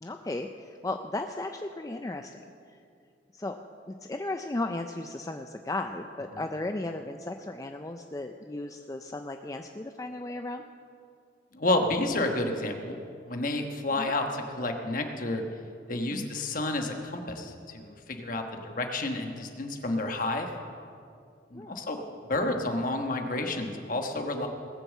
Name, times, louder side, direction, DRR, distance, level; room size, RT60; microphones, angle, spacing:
voice 1, 0.0-2.4 2.7-2.8 3.3-3.6 3.9-10.6 14.0-14.1 16.1-16.3 21.5-21.8, left 2 dB, 20° left, 5 dB, 0.4 m, -35 dB
voice 2, 11.5-13.0 13.3-15.4 15.9-20.5 21.5-22.0 22.3-24.5, left 2 dB, 45° left, 4 dB, 1.3 m, -30 dB
19.0 x 6.9 x 7.3 m, 2.4 s
head